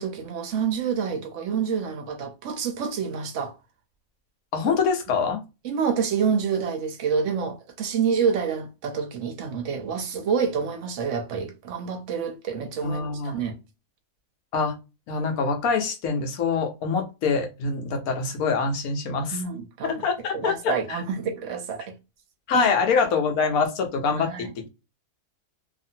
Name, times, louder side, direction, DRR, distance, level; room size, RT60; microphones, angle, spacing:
voice 1, 0.0-3.6 5.6-13.6 19.3-20.0 20.3-21.9 22.5-22.7 24.2-24.5, right 6 dB, 65° right, 0.8 m, -28 dB
voice 2, 4.5-5.4 12.8-13.4 14.5-14.7 15.1-19.4 19.8-21.0 22.5-24.7, left 5 dB, 70° left, 1.2 m, -25 dB
2.8 x 2.6 x 2.6 m
omnidirectional pair, 1.7 m